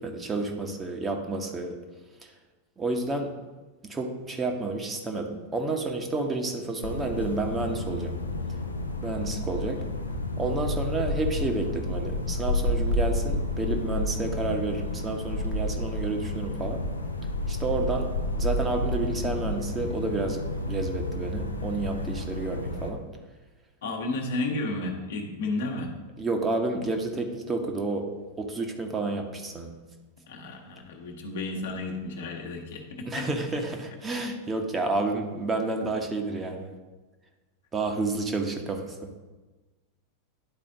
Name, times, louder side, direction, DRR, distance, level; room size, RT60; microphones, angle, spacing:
voice 1, 0.0-1.7 2.8-3.3 3.8-8.1 9.0-9.8 10.4-16.8 17.5-18.1 18.4-23.0 26.2-28.1 28.4-29.7 33.1-36.7 37.7-39.1, right 3 dB, 15° right, 3 dB, 0.9 m, -30 dB
sound 1, 6.8-22.9, left 2 dB, 80° left, 0.6 m, -30 dB
voice 2, 23.8-25.9 30.3-33.3, left 2 dB, 60° left, 2 dB, 1.1 m, -32 dB
10.5 x 4.2 x 3.7 m, 1.2 s
figure-of-eight pair, 90°, 0 cm